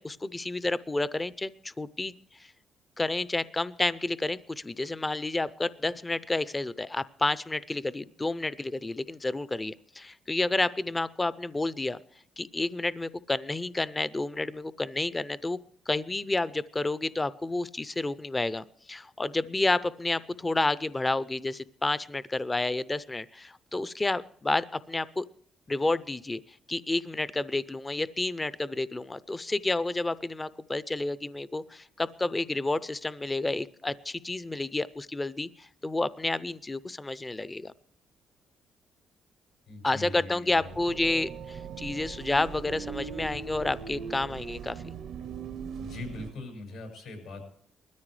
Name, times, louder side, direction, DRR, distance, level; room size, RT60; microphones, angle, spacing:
voice 1, 0.0-2.1 2.4-2.5 3.0-12.0 12.4-15.6 15.9-25.2 25.7-26.4 26.7-37.7 39.8-44.9, left 2 dB, 20° left, 17 dB, 0.5 m, -30 dB
voice 2, 39.7-40.7 45.8-47.5, left 2 dB, 85° left, 3 dB, 6.3 m, -41 dB
sound 1, 40.6-46.3, right 7 dB, 70° right, 0.8 m, -40 dB
20.5 x 13.5 x 3.2 m, 0.63 s
cardioid pair, 90°, 0 cm